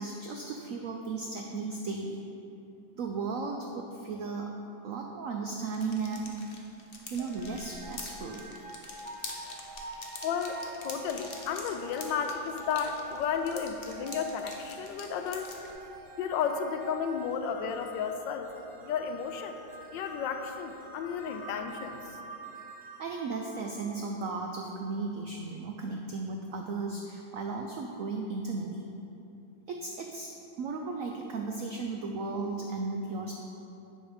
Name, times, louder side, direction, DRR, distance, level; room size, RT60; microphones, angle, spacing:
voice 1, 0.0-2.2 2.9-4.5 4.8-6.3 7.1-8.5 23.0-28.9 29.7-30.3 30.6-33.3, right 4 dB, 80° right, 2 dB, 0.7 m, -35 dB
sound 1, 5.6-15.7, left 3 dB, 45° left, 0.7 m, -45 dB
sound 2, 7.2-24.3, right 2 dB, 35° right, 1.3 m, -47 dB
voice 2, 10.2-15.5 16.2-18.5 18.8-19.6 19.9-22.0, left 6 dB, 80° left, 6 dB, 1.3 m, -33 dB
10.0 x 4.5 x 5.0 m, 2.8 s
omnidirectional pair, 2.0 m